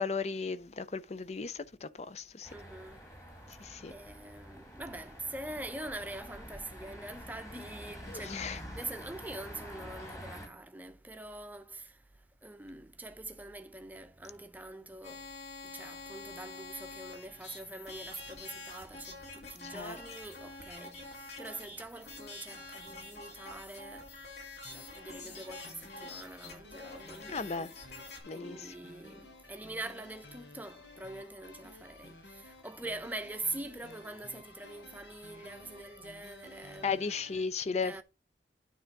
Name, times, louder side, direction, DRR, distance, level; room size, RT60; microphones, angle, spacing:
voice 1, 0.0-2.5 3.6-3.9 8.1-8.6 19.6-20.0 27.3-27.7 28.3-28.7 36.8-37.9, left 5 dB, 40° left, 0.5 m, -35 dB
sound 1, 2.4-10.5, equal, 15° left, 1.7 m, -47 dB
voice 2, 2.5-3.0 3.9-8.5 8.7-12.1 12.4-15.3 15.6-24.1 24.7-37.1 37.8-38.0, right 2 dB, 10° right, 0.7 m, -44 dB
sound 2, 15.0-28.2, left 3 dB, 60° left, 3.0 m, -47 dB
sound 3, 24.6-37.4, left 2 dB, 85° left, 1.4 m, -54 dB
9.4 x 3.4 x 5.8 m
head